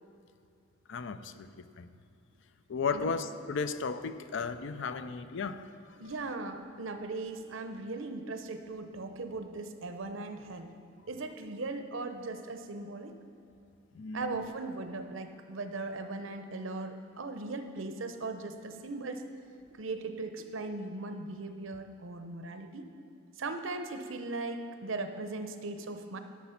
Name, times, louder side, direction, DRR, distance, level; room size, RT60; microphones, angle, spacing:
voice 1, 0.9-1.9 2.7-5.7 14.0-14.5, left 5 dB, 60° left, 11 dB, 0.4 m, -35 dB
voice 2, 6.0-10.7 11.1-13.1 14.1-19.2 19.7-22.8 23.4-26.2, right 3 dB, 70° right, 7 dB, 0.7 m, -38 dB
12.0 x 6.0 x 5.8 m, 2.7 s
head